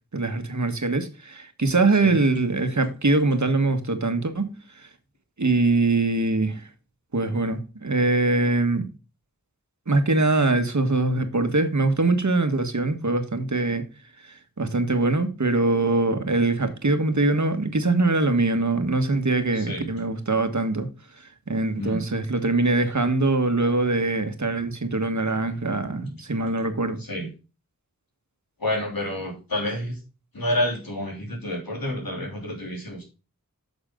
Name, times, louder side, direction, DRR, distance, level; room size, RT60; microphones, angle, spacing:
voice 1, 0.1-4.9 5.4-6.7 7.1-8.9 9.9-13.8 14.2-20.9 21.2-27.0, right 2 dB, 55° right, 1.5 m, -23 dB
voice 2, 19.5-19.9 21.7-22.0 27.0-27.3 28.6-30.0 30.3-33.1, left 1 dB, 85° left, 3.4 m, -29 dB
9.3 x 6.3 x 3.7 m
wide cardioid pair, 45°, 34 cm